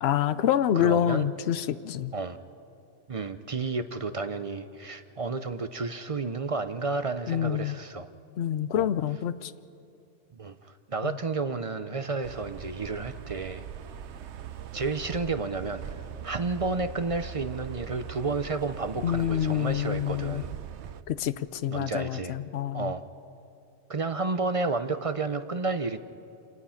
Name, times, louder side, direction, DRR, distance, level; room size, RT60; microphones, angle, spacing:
voice 1, 0.0-2.1 7.3-7.8 8.4-9.5 11.1-11.2 19.0-20.4 21.1-22.9, left 10 dB, 65° left, 14 dB, 0.9 m, -27 dB
voice 2, 0.7-1.3 2.1-2.4 3.1-8.1 8.7-8.9 10.3-13.7 14.7-20.5 21.7-22.4 22.7-23.0 23.9-26.0, right 3 dB, 35° right, 10 dB, 0.6 m, -31 dB
sound 1, 12.2-21.0, right 9 dB, 75° right, 1.0 m, -41 dB
27.0 x 19.0 x 5.8 m, 2.7 s
omnidirectional pair, 1.2 m